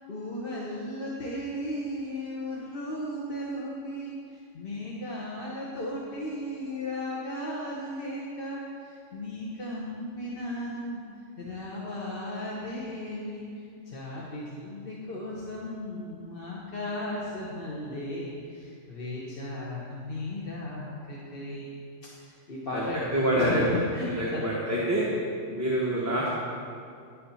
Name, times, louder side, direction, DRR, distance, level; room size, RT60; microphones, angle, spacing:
voice 1, 0.1-11.0 11.4-23.7 23.9-24.8, left 1 dB, 50° left, -5 dB, 1.4 m, -36 dB
voice 2, 23.1-23.7 24.1-25.1 25.5-26.3, right 1 dB, 15° right, -6 dB, 1.2 m, -26 dB
11.0 x 6.9 x 5.7 m, 2.4 s
omnidirectional pair, 1.3 m